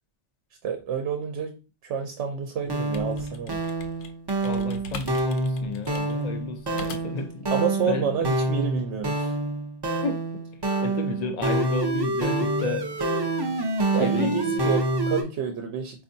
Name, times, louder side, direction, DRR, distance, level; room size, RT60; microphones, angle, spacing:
voice 1, 0.6-3.6 7.5-9.4 13.9-16.0, right 7 dB, 90° right, 0.9 m, -29 dB
sound 1, 2.6-7.3, left 3 dB, 85° left, 0.9 m, -42 dB
sound 2, 2.6-15.2, right 2 dB, 40° right, 0.3 m, -27 dB
voice 2, 4.4-7.5 7.9-8.1 10.0-10.4 10.8-12.9 14.0-14.7, left 4 dB, 60° left, 0.4 m, -32 dB
4.3 x 2.5 x 2.6 m
omnidirectional pair, 1.1 m